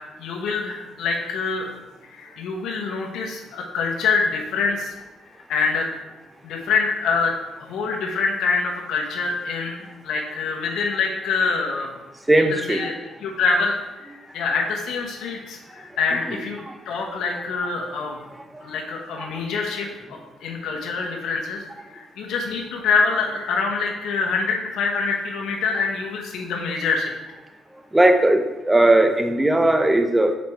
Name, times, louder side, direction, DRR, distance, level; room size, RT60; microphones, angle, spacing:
voice 1, 0.2-1.7 2.1-4.9 5.5-5.9 6.4-7.3 7.6-12.0 12.5-12.9 13.2-16.6 16.8-18.2 18.6-19.9 20.4-27.1, left 4 dB, 80° left, 0 dB, 1.1 m, -25 dB
voice 2, 12.3-12.9 16.2-16.4 16.6-16.8 19.2-19.4 27.9-30.4, right 1 dB, 10° right, 7 dB, 0.7 m, -18 dB
5.9 x 4.3 x 4.6 m, 1.1 s
cardioid pair, 90°, 0 cm